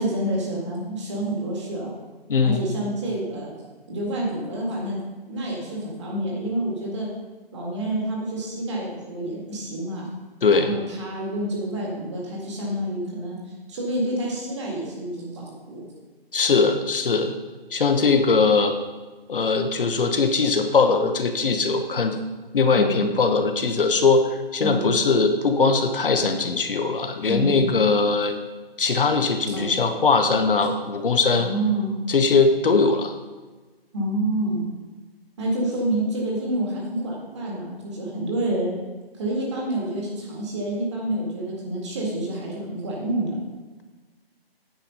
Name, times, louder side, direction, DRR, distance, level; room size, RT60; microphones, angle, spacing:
voice 1, 0.0-1.9 2.4-3.5 3.9-5.0 5.3-7.1 7.5-10.1 10.5-15.9 22.7-23.0 24.6-24.8 27.3-27.6 29.5-29.7 31.3-31.9 33.9-34.6 35.4-38.7 39.1-43.4, right 1 dB, 30° right, -3 dB, 2.0 m, -28 dB
voice 2, 2.3-2.6 10.4-10.7 16.3-17.3 17.7-18.8 19.3-22.2 22.5-28.4 28.8-31.5 32.1-33.1, left 4 dB, 60° left, 6 dB, 1.0 m, -20 dB
9.1 x 5.1 x 5.5 m, 1.3 s
hypercardioid pair, 165°, 30 cm